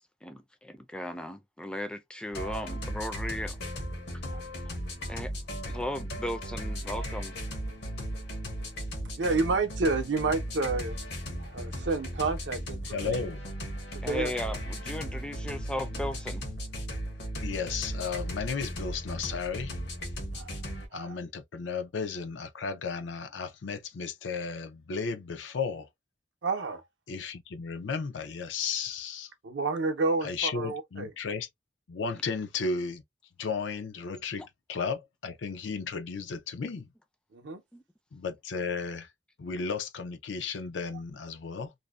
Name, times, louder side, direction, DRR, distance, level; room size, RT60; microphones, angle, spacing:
voice 1, 0.2-3.6 4.7-4.8 5.1-5.3 5.6-7.4 14.0-16.5 37.7-37.8, left 1 dB, 5° left, 0.4 m, -36 dB
sound 1, 2.3-20.9, equal, 65° left, 0.9 m, -36 dB
voice 2, 9.2-11.0 11.4-13.2 14.1-14.3 20.3-20.5 20.9-21.1 26.4-26.8 29.4-31.1 37.3-37.6, right 3 dB, 75° right, 0.6 m, -29 dB
voice 3, 12.8-13.5 17.4-19.8 20.9-25.9 27.1-29.3 30.2-31.5 31.9-33.0 33.4-36.9 38.1-39.1 39.4-41.7, left 5 dB, 85° left, 0.5 m, -34 dB
2.6 x 2.0 x 2.3 m
head